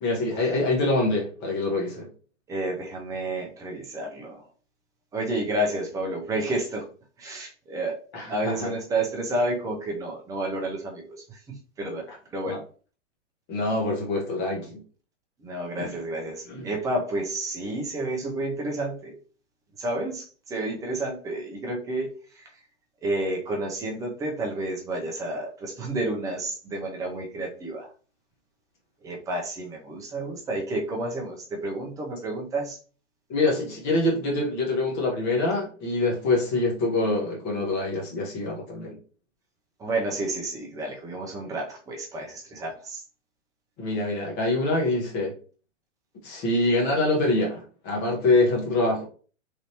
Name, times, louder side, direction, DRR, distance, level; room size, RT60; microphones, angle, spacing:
voice 1, 0.0-2.1 8.1-8.7 12.5-12.6 13.5-14.8 15.8-16.0 16.4-16.7 33.3-39.0 43.8-45.3 46.2-49.0, left 2 dB, 30° left, 1.0 m, -25 dB
voice 2, 2.5-4.4 5.1-6.9 7.2-8.0 8.3-11.0 11.3-12.1 12.3-12.6 15.4-19.1 19.8-22.5 23.0-27.9 29.0-32.8 39.8-43.0, right 2 dB, 10° right, 0.5 m, -30 dB
3.4 x 2.5 x 2.8 m
hypercardioid pair, 120°, 37 cm